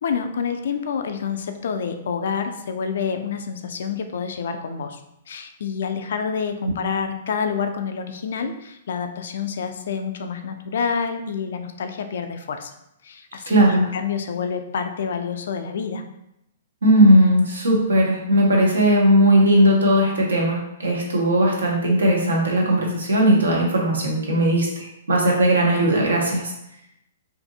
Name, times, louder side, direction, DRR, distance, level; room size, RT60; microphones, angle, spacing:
voice 1, 0.0-5.0 5.3-12.7 13.0-16.0, left 6 dB, 70° left, 7 dB, 0.3 m, -28 dB
voice 2, 13.5-13.9 16.8-26.5, equal, 85° right, -1 dB, 0.7 m, -18 dB
2.6 x 2.5 x 2.6 m, 0.83 s
hypercardioid pair, 120°, 0 cm